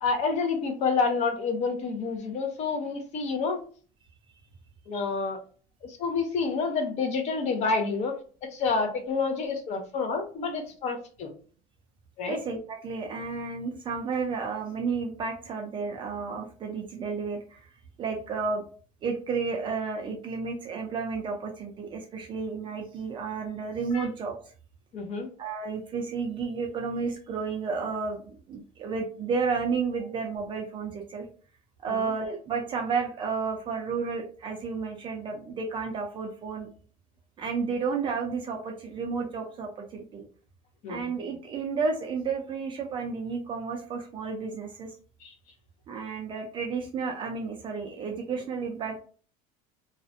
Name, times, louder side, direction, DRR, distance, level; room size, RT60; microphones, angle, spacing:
voice 1, 0.0-3.6 4.9-5.4 5.8-8.1 8.4-11.3 12.2-12.4 23.9-24.1 24.9-25.3 32.0-32.1 40.8-41.0 45.2-45.3, left 4 dB, 40° left, 5 dB, 0.5 m, -28 dB
voice 2, 12.3-17.7 18.0-18.6 19.0-24.3 25.4-31.2 31.8-36.7 37.4-40.2 40.9-45.0 45.9-49.0, right 5 dB, 30° right, 2 dB, 0.4 m, -32 dB
2.5 x 2.1 x 2.5 m, 0.42 s
cardioid pair, 150°, 18 cm